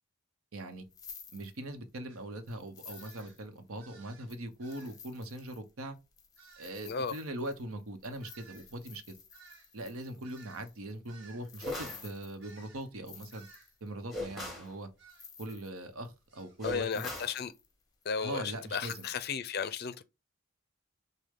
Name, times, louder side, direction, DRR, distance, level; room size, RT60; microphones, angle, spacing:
voice 1, 0.5-0.8 1.3-6.0 6.6-9.1 9.7-13.5 13.8-14.9 15.4-17.1 18.2-19.1, right 1 dB, 75° right, 0.9 m, -41 dB
sound 1, 0.7-2.0 2.5-3.8 4.3-13.9 14.4-14.8 15.1-16.1 16.4-16.5 16.8-17.7 18.0-19.3, left 6 dB, 15° left, 0.8 m, -53 dB
sound 2, 2.1-2.2 2.9-3.4 3.8-4.3 4.6-5.0 6.4-6.8 8.2-12.1 12.4-12.9 13.3-13.7 15.0-15.3 16.3-16.6 18.1-18.6, right 5 dB, 50° right, 1.5 m, -57 dB
sound 3, 11.6-12.1 14.1-14.7 16.6-17.4, left 2 dB, ahead, 1.3 m, -39 dB
voice 2, 16.6-17.5 18.1-18.4 18.7-20.0, left 6 dB, 45° left, 0.4 m, -34 dB
6.4 x 2.2 x 3.6 m
head